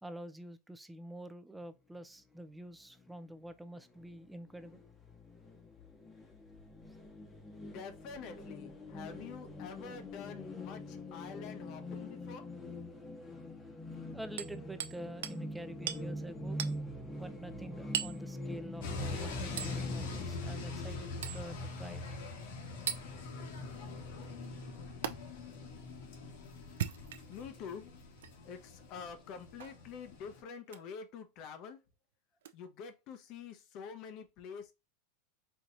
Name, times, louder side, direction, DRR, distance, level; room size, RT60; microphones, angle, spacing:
voice 1, 0.0-4.8 14.1-16.6 17.2-22.0 25.2-25.3 27.4-27.5, right 1 dB, 5° right, 0.4 m, -47 dB
sound 1, 3.0-3.1 3.5-3.6 3.9-20.3, left 1 dB, 15° left, 0.9 m, -44 dB
voice 2, 7.6-12.5 27.3-27.9 28.4-31.8 32.5-34.7, left 6 dB, 50° left, 0.8 m, -47 dB
Hammer, 14.4-15.0 15.2-15.4 15.9-16.0 16.6-16.8 17.9-18.2 19.6-19.8 21.2-21.4 22.9-23.0 25.0-25.1 26.6-27.4 28.2-28.3 29.6-29.8 30.7-30.9 32.4-32.5, right 10 dB, 85° right, 0.4 m, -37 dB
sound 2, 18.8-30.4, left 3 dB, 75° left, 1.4 m, -43 dB
4.5 x 2.9 x 2.5 m
supercardioid pair, 130°, 0 cm